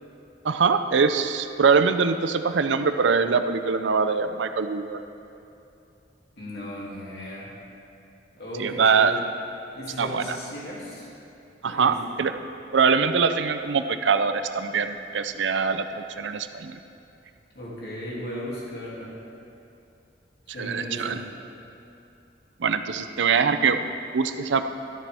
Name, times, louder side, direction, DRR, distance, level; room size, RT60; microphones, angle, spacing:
voice 1, 0.4-5.0 8.6-9.2 10.0-10.4 11.6-12.3 12.7-16.8 20.6-21.2 22.6-24.6, right 5 dB, 85° right, 9 dB, 0.5 m, -23 dB
voice 2, 6.4-7.5 8.4-9.2 9.7-11.1 11.6-12.1 17.5-19.1 20.5-21.3, equal, 55° left, -6 dB, 2.7 m, -36 dB
13.0 x 12.5 x 3.5 m, 2.8 s
head